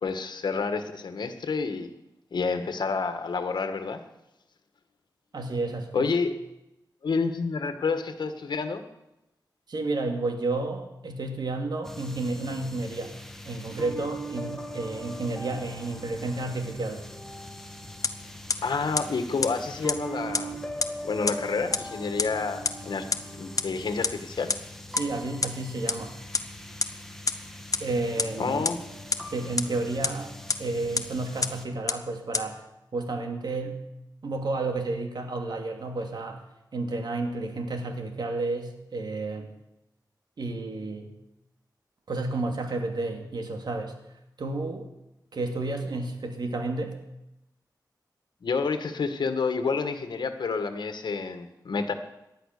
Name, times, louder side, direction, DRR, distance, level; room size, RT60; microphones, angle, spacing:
voice 1, 0.0-1.9 2.3-4.0 5.9-6.3 7.0-8.8 18.6-20.6 21.0-23.1 23.3-24.5 28.4-28.8 48.4-51.9, left 4 dB, 85° left, 8 dB, 1.7 m, -29 dB
voice 2, 5.3-6.1 9.7-13.2 13.5-17.1 24.9-26.2 27.8-28.7 29.3-30.3 30.6-32.6 32.9-33.8 34.2-36.4 36.7-39.5 40.4-41.1 42.1-44.0 44.4-44.9 45.3-46.9, right 2 dB, 75° right, 4 dB, 2.6 m, -31 dB
sound 1, 11.8-31.7, equal, 5° left, 1.7 m, -41 dB
sound 2, 18.0-18.1 18.5-18.6 19.0-19.1 19.4-19.5 19.9-20.0 20.3-20.4 20.8-20.9 21.3-21.4 21.7-21.8 22.2-22.3 22.6-22.7 23.1-23.2 23.6-23.7 24.0-24.1 24.5-24.6 25.0-25.1 25.4-25.5 25.9-26.0 26.3-26.4 26.8-26.9 27.3-27.4 27.7-27.8 28.2-28.3 28.6-28.7 29.1-29.2 29.6-29.7 30.0-30.1 30.5-30.6 31.0-31.1 31.4-31.5 31.9-32.0 32.3-32.4, left 4 dB, 50° left, 1.0 m, -24 dB
18.5 x 11.5 x 6.8 m, 0.90 s
wide cardioid pair, 85°, 7 cm